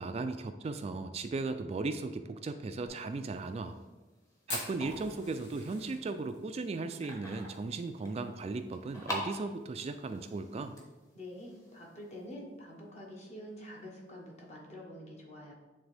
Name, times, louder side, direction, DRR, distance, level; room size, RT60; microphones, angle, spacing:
voice 1, 0.0-3.8 4.5-10.8, right 3 dB, 35° right, 8 dB, 0.3 m, -37 dB
sound 1, 2.8-12.2, left 1 dB, 20° left, 1.2 m, -46 dB
Fire, 4.5-9.0 9.2-9.3 9.6-9.7 10.1-10.5 11.0-11.1 12.2-12.3, left 1 dB, 80° left, 1.7 m, -43 dB
voice 2, 11.1-15.5, left 1 dB, 40° left, -2 dB, 1.4 m, -47 dB
9.4 x 3.5 x 3.4 m, 1.1 s
head